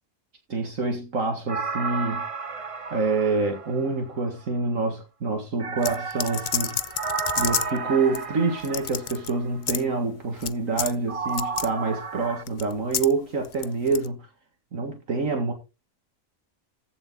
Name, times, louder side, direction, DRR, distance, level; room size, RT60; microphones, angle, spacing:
voice 1, 0.5-2.2 2.9-6.8 7.4-14.3 14.7-15.5, right 4 dB, 70° right, 2.2 m, -26 dB
sound 1, 1.5-4.3 5.6-9.4 11.1-12.4, right 4 dB, 30° right, 0.8 m, -32 dB
sound 2, 5.8-7.8 8.1-8.2 8.6-9.3 9.6-9.8 10.4-10.5 10.8-10.9 11.3-11.7 12.5-13.1 13.4-14.1, left 8 dB, 50° left, 0.6 m, -29 dB
15.0 x 7.3 x 3.8 m
omnidirectional pair, 1.4 m